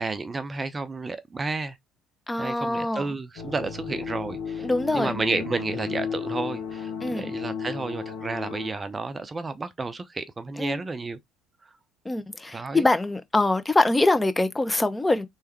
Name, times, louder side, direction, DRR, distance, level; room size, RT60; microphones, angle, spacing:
voice 1, 0.0-1.8 2.4-4.7 4.9-11.2 11.6-11.7 12.5-12.9, right 3 dB, 25° right, 0.6 m, -31 dB
voice 2, 2.3-3.0 4.6-5.1 7.0-7.3 10.6-10.8 12.0-15.3, left 2 dB, 15° left, 0.8 m, -24 dB
sound 1, 3.4-8.7, left 6 dB, 70° left, 1.2 m, -34 dB
3.5 x 3.1 x 4.4 m
figure-of-eight pair, 55°, 0 cm